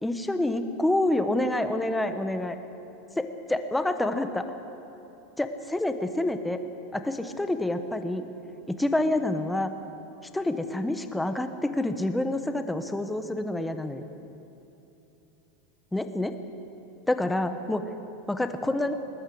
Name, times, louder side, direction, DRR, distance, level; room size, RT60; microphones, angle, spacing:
voice 1, 0.0-2.6 3.2-4.5 5.4-6.6 6.9-8.3 8.7-9.7 10.3-14.0 15.9-16.3 17.1-17.9 18.3-18.9, left 1 dB, 5° left, 8 dB, 1.1 m, -27 dB
20.5 x 20.0 x 8.6 m, 2.9 s
supercardioid pair, 155°, 0 cm